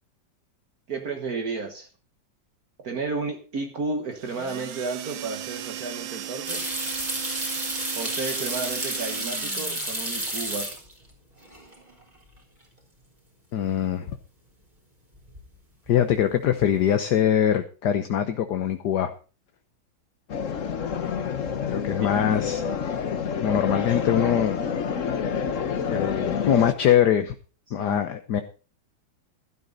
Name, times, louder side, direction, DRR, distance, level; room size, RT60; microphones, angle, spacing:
voice 1, 0.9-1.9 2.8-6.6 7.9-10.7 22.0-22.2 27.7-28.0, right 4 dB, 55° right, 4 dB, 1.9 m, -32 dB
sound 1, 4.1-10.0, right 11 dB, 85° right, 1.6 m, -37 dB
sound 2, 6.5-11.1 11.4-12.0 12.4-12.5 15.2-15.6 15.9-16.4, right 1 dB, 20° right, 3.9 m, -31 dB
voice 2, 13.5-14.2 15.9-19.1 21.7-22.6 23.4-24.6 25.9-27.3 27.7-28.4, left 9 dB, 65° left, 8 dB, 1.5 m, -23 dB
sound 3, 20.3-26.7, left 6 dB, 50° left, 1.3 m, -28 dB
15.5 x 12.5 x 4.0 m, 0.36 s
omnidirectional pair, 2.0 m